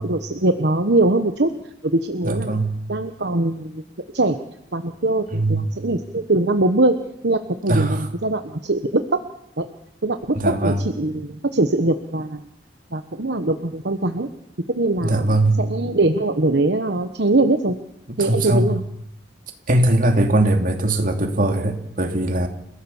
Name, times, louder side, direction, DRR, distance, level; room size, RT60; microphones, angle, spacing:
voice 1, 0.0-1.5 1.8-2.6 2.9-3.8 4.1-4.4 4.7-6.9 7.2-9.2 9.6-9.7 10.0-12.5 12.9-14.3 14.7-17.7 18.2-18.8, right 2 dB, 65° right, 7 dB, 1.2 m, -22 dB
voice 2, 2.2-2.8 5.3-5.7 7.7-8.0 10.3-10.9 15.0-15.6 18.1-18.8 19.7-22.5, right 1 dB, 50° right, 4 dB, 2.8 m, -20 dB
30.0 x 16.0 x 7.3 m, 0.81 s
head